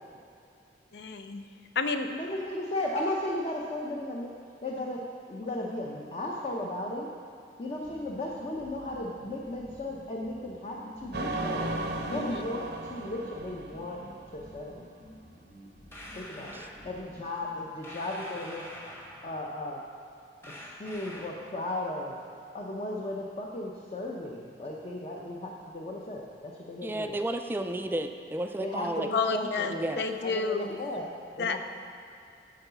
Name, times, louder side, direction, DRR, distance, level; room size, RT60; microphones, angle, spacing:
voice 1, 0.9-1.5 1.8-2.1 12.1-12.4 29.1-30.7 31.4-31.6, left 4 dB, 70° left, 7 dB, 0.6 m, -30 dB
voice 2, 2.1-4.3 4.6-5.0 5.3-7.1 7.6-11.7 12.1-14.0 14.3-14.8 16.1-18.7 19.2-19.8 20.4-22.2 22.5-27.2 28.6-29.9 30.2-31.1 31.4-31.6, left 1 dB, 35° left, -2 dB, 0.7 m, -35 dB
sound 1, 7.8-17.3, equal, 90° left, 2.5 m, -52 dB
sound 2, 11.1-14.5, right 2 dB, 65° right, 0.6 m, -35 dB
sound 3, 15.9-16.8 17.8-19.4 20.4-21.5, left 1 dB, 15° left, 1.1 m, -45 dB
voice 3, 26.8-29.1 29.7-30.1, right 1 dB, 10° right, 6 dB, 0.3 m, -32 dB
11.5 x 3.9 x 6.8 m, 2.4 s
head